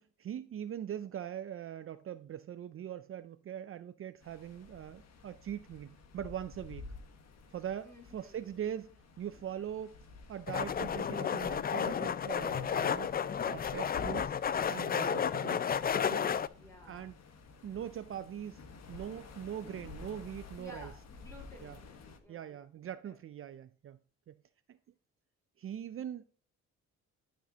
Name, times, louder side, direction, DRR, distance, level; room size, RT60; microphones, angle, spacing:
voice 1, 0.0-6.9 7.5-8.9 9.2-9.9 10.3-14.4 14.7-15.7 16.0-16.3 16.9-17.1 17.6-18.6 18.9-20.9 21.6-21.8 22.3-24.0 24.3-24.4 24.7-24.8 25.6-26.2, right 10 dB, 45° right, 0.5 m, -42 dB
sound 1, 4.2-22.2, left 3 dB, 60° left, 1.4 m, -52 dB
voice 2, 7.8-8.4 16.4-17.1 17.6-17.8 20.6-22.6 23.0-23.2, left 1 dB, 10° left, 4.2 m, -54 dB
sound 2, 10.5-16.5, left 7 dB, 30° left, 0.4 m, -32 dB
11.5 x 6.3 x 2.9 m
cardioid pair, 90°, 30 cm